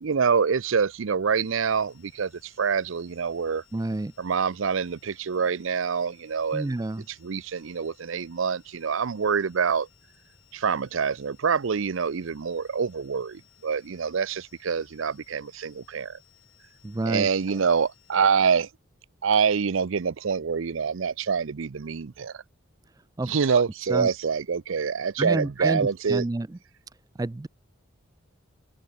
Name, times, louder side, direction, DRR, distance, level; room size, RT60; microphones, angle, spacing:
voice 1, 0.0-3.6 4.2-6.7 7.1-9.9 10.5-16.2 17.1-18.7 19.2-22.4 23.2-26.2, right 6 dB, 75° right, 0.5 m, -26 dB
sound 1, 1.4-18.2, left 11 dB, 75° left, 6.0 m, -62 dB
voice 2, 3.7-4.1 6.5-7.0 16.8-17.3 23.2-23.3 23.9-24.1 25.2-26.5 27.2-27.5, right 2 dB, 20° right, 0.3 m, -28 dB
head